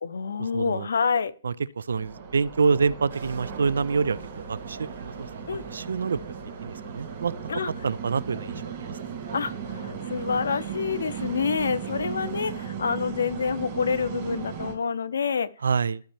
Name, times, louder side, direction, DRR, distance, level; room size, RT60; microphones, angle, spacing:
voice 1, 0.0-1.3 5.5-5.6 7.5-7.7 9.3-15.5, left 6 dB, 85° left, 0.6 m, -27 dB
voice 2, 0.5-0.9 1.4-4.2 4.5-5.3 5.7-6.2 6.6-7.3 7.8-9.0 15.6-16.0, right 5 dB, 90° right, 0.4 m, -26 dB
sound 1, 1.9-14.7, right 7 dB, 30° right, 1.9 m, -37 dB
sound 2, 3.1-12.7, right 4 dB, 70° right, 1.3 m, -44 dB
12.5 x 4.3 x 3.3 m
hypercardioid pair, 165°, 0 cm